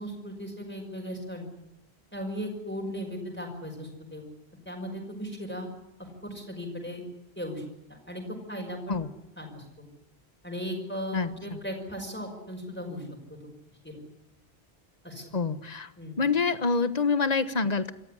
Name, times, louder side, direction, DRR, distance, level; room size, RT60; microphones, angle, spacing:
voice 1, 0.0-1.5 2.1-4.3 4.7-5.7 6.2-7.0 7.4-7.6 7.9-8.2 8.5-9.0 9.4-9.9 10.4-13.1 13.4-13.5 13.8-14.0 15.0-15.3 16.0-16.2, equal, 10° left, 0 dB, 5.4 m, -37 dB
voice 2, 15.3-15.9 16.2-17.9, left 4 dB, 40° left, 13 dB, 1.3 m, -26 dB
27.0 x 14.0 x 10.0 m, 0.93 s
omnidirectional pair, 1.1 m